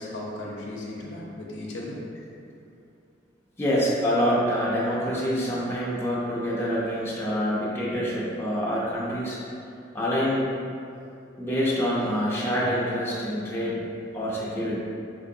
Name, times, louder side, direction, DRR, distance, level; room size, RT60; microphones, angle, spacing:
voice 1, 0.0-2.0, left 1 dB, 75° left, -3 dB, 0.7 m, -36 dB
voice 2, 3.6-9.4 9.9-10.5 11.4-13.8 14.1-14.8, equal, 15° left, -7 dB, 0.5 m, -26 dB
4.6 x 2.9 x 2.7 m, 2.6 s
head